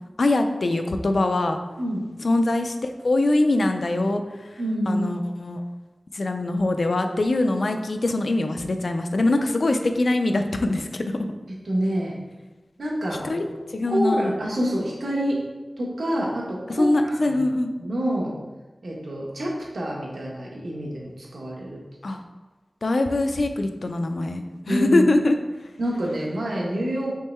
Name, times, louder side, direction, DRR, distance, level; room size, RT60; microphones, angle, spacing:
voice 1, 0.2-1.6 2.2-2.7 3.0-4.2 4.9-5.6 6.1-11.2 13.2-13.4 13.7-14.3 16.7-17.7 22.0-22.2 22.8-25.4, left 2 dB, 65° left, 6 dB, 0.4 m, -23 dB
voice 2, 4.6-5.0 11.6-12.2 12.8-13.4 13.8-15.4 15.8-17.4 17.8-18.4 18.8-21.8 24.7-25.1 25.8-27.2, equal, 80° right, -3 dB, 1.0 m, -27 dB
3.6 x 3.1 x 4.2 m, 1.2 s
wide cardioid pair, 75°, 0 cm